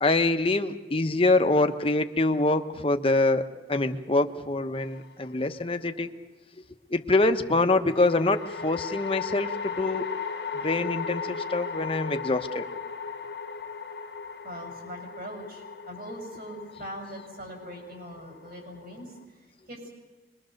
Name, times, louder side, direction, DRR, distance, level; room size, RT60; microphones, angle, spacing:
voice 1, 0.0-6.1 6.9-10.0 10.6-12.7, left 2 dB, 30° left, 7 dB, 1.0 m, -25 dB
sound 1, 4.8-5.5 7.9-19.2, left 5 dB, 70° left, 1.4 m, -37 dB
voice 2, 14.4-19.9, equal, 55° right, 1 dB, 7.2 m, -41 dB
25.0 x 22.0 x 6.5 m, 1.2 s
head